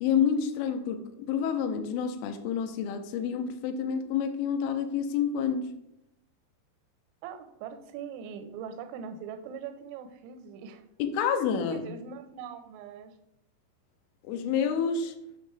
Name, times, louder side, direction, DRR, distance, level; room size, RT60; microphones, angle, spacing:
voice 1, 0.0-5.7 11.0-11.9 14.2-15.1, left 7 dB, 90° left, 6 dB, 3.2 m, -28 dB
voice 2, 7.2-10.8 11.2-11.4 11.7-13.2, right 7 dB, 85° right, 8 dB, 3.0 m, -41 dB
8.4 x 5.6 x 3.3 m, 0.80 s
omnidirectional pair, 5.5 m